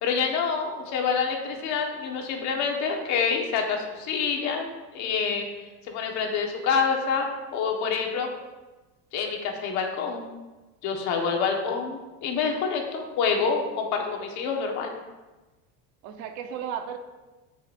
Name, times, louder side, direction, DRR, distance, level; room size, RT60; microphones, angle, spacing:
voice 1, 0.0-5.5 5.8-8.3 9.1-10.3 10.8-15.0, left 5 dB, 55° left, 2 dB, 1.4 m, -27 dB
voice 2, 11.2-11.7 16.0-17.0, right 8 dB, 60° right, 6 dB, 1.0 m, -35 dB
13.5 x 5.5 x 2.6 m, 1.2 s
cardioid pair, 160°, 34 cm